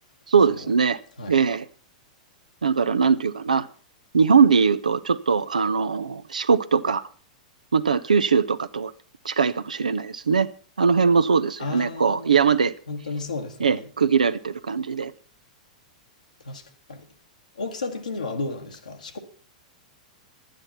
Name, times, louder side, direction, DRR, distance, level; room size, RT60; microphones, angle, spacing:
voice 1, 0.3-1.0 1.3-1.7 2.6-3.7 4.1-7.0 7.7-8.9 9.2-10.5 10.8-12.7 13.6-15.1, right 5 dB, 80° right, 0.5 m, -21 dB
voice 2, 11.6-12.4 12.9-13.9 16.4-16.6 16.9-17.1 17.5-19.2, left 3 dB, 80° left, 1.3 m, -33 dB
11.0 x 9.0 x 5.7 m
figure-of-eight pair, 100°, 4 cm